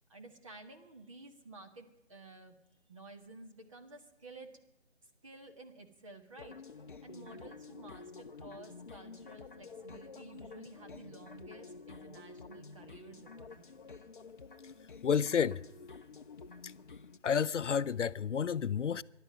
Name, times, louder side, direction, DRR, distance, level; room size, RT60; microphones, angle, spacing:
voice 1, 0.1-2.6 2.9-4.5 5.0-14.0, right 2 dB, 30° right, 1.5 m, -53 dB
sound 1, 6.4-17.2, left 4 dB, 45° left, 0.7 m, -50 dB
voice 2, 15.0-15.6 16.6-16.7 17.2-19.0, left 7 dB, 90° left, 0.6 m, -30 dB
22.5 x 11.5 x 5.3 m
figure-of-eight pair, 170°, 35 cm